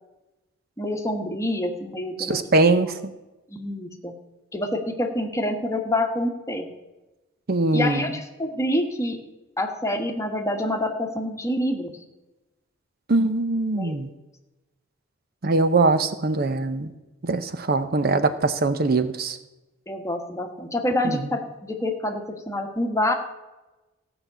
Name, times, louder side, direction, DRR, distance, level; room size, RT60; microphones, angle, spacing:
voice 1, 0.8-2.4 3.5-4.2 4.5-6.7 7.7-9.2 9.6-12.0 13.7-13.9 19.9-23.1, left 1 dB, 15° left, 3 dB, 1.4 m, -27 dB
voice 2, 2.2-3.0 7.5-8.1 13.1-14.1 15.4-16.9 17.2-19.4 21.0-21.3, right 3 dB, 50° right, 11 dB, 0.7 m, -22 dB
15.5 x 5.9 x 8.0 m, 1.1 s
head